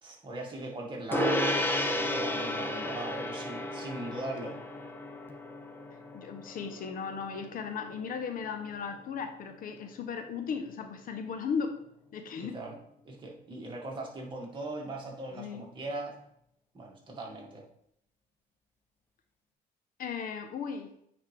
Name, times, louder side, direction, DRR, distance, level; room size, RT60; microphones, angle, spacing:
voice 1, 0.0-1.5 1.8-4.6 12.4-12.8 13.0-16.2 16.7-17.6, right 2 dB, 30° right, -2 dB, 2.1 m, -39 dB
Gong, 1.1-10.8, left 1 dB, 10° left, 0.8 m, -34 dB
voice 2, 6.1-11.8 12.1-12.6 15.4-15.7 20.0-20.9, left 6 dB, 55° left, 7 dB, 0.8 m, -36 dB
9.1 x 4.3 x 3.4 m, 0.71 s
cardioid pair, 110°, 17 cm